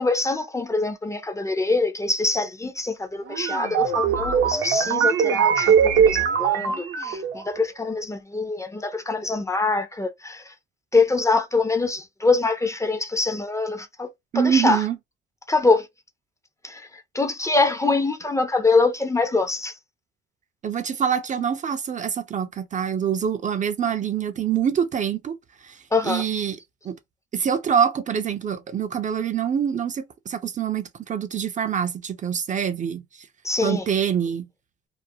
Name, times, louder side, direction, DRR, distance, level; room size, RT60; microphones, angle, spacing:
voice 1, 0.0-10.4 10.9-14.1 14.3-14.8 15.5-15.9 16.6-16.9 17.1-19.7 25.9-26.2 33.4-33.8, left 3 dB, 15° left, 0.5 m, -24 dB
sound 1, 3.3-7.5, right 7 dB, 75° right, 0.7 m, -21 dB
voice 2, 14.3-15.0 20.6-25.3 25.6-26.6 26.8-27.0 27.3-33.3 33.6-34.5, right 8 dB, 40° right, 0.4 m, -25 dB
2.4 x 2.0 x 2.6 m
cardioid pair, 90°, 20 cm